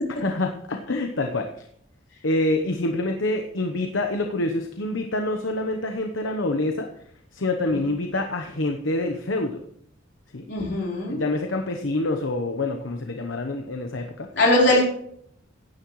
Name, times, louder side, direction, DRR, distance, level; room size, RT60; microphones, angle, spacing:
voice 1, 0.2-1.6 2.2-6.9 7.3-9.6 10.3-10.4 11.1-14.3, left 2 dB, 80° left, 5 dB, 1.0 m, -26 dB
voice 2, 10.5-11.2 14.3-14.8, left 1 dB, 60° left, -3 dB, 4.2 m, -20 dB
15.5 x 10.5 x 3.2 m, 0.68 s
head